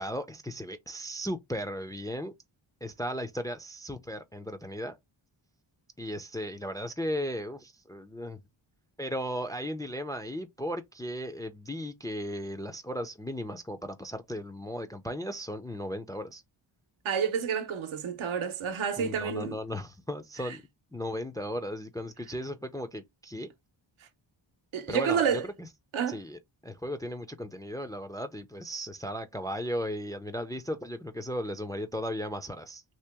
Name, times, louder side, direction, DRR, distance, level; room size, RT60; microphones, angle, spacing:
voice 1, 0.0-2.3 2.8-5.0 6.0-8.4 9.0-16.4 19.0-20.6 20.9-23.5 24.9-25.7 26.1-32.8, equal, 10° left, 0.3 m, -36 dB
voice 2, 17.0-19.5 20.5-20.6 24.7-25.4 25.9-26.2, right 7 dB, 75° right, 0.8 m, -29 dB
2.9 x 2.9 x 3.3 m
wide cardioid pair, 100°, 49 cm